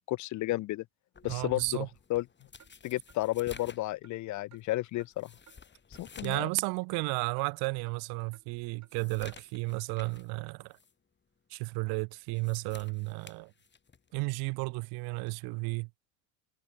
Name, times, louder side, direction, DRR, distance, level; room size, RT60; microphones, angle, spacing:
voice 1, 0.1-0.8 1.2-2.2 2.8-5.3 6.0-6.5, left 17 dB, 40° left, 0.6 m, -32 dB
sound 1, 1.1-6.5 6.9-7.0 7.6-7.7 8.1-10.3 10.7-10.9 12.2-14.1 15.2-15.4, left 5 dB, 25° left, 4.2 m, -53 dB
voice 2, 1.3-1.9 6.2-10.8 11.5-13.5 14.1-15.9, right 29 dB, 55° right, 0.7 m, -33 dB
Clock, 2.6-2.7 3.1-3.2 3.6-3.7 4.0-4.2 4.5-4.6 5.0-5.1 5.5-5.6 5.9-6.1 6.4-6.5 6.9-7.0 7.4-7.5 7.9-8.0 8.3-8.5 8.8-8.9 9.3-9.4 9.8-9.9, right 9 dB, 35° right, 6.7 m, -59 dB
hypercardioid pair, 85°, 46 cm